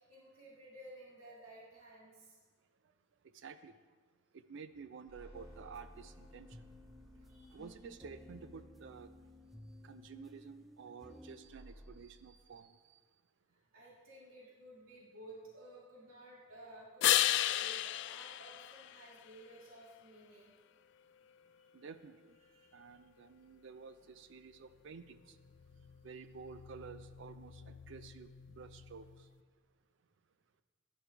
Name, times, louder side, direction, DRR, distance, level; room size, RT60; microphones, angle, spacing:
voice 1, 0.0-2.4 7.2-7.6 9.6-9.8 13.7-20.5 22.4-22.7 25.6-25.7, right 1 dB, 75° right, -7 dB, 3.6 m, -55 dB
voice 2, 3.3-3.7 4.3-6.5 7.5-9.1 9.8-13.0 21.7-22.2 22.7-25.4 26.0-28.3 28.6-29.1, right 5 dB, 60° right, 11 dB, 0.4 m, -51 dB
sound 1, 5.1-9.6 11.4-12.0, equal, 25° right, 3.1 m, -58 dB
sound 2, 5.3-11.4, left 1 dB, ahead, 0.5 m, -56 dB
sound 3, 17.0-19.6 25.3-29.3, left 13 dB, 55° left, 0.3 m, -36 dB
16.0 x 11.0 x 3.4 m, 1.5 s
head